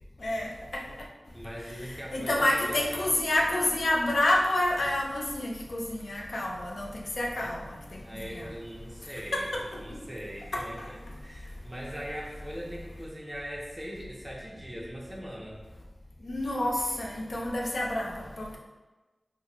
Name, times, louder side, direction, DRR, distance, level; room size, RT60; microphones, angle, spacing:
voice 1, 0.2-0.8 2.1-7.6 7.9-8.5 9.3-9.6 10.5-10.6 16.3-18.6, left 1 dB, 85° left, -1 dB, 0.5 m, -28 dB
voice 2, 1.3-3.0 7.3-7.5 8.0-15.6, equal, 15° right, -3 dB, 0.6 m, -40 dB
4.1 x 2.0 x 3.0 m, 1.2 s
wide cardioid pair, 70°, 0 cm